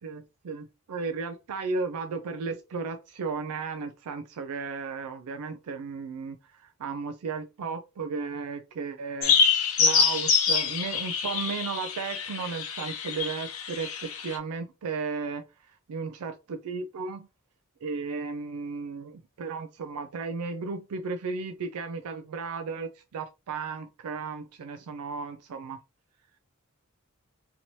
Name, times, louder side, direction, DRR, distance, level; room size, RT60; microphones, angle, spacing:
voice 1, 0.0-15.5 15.9-17.3 17.8-25.8, right 4 dB, 90° right, 0.4 m, -35 dB
sound 1, 9.2-14.4, left 6 dB, 65° left, 0.8 m, -26 dB
2.9 x 2.7 x 3.0 m
head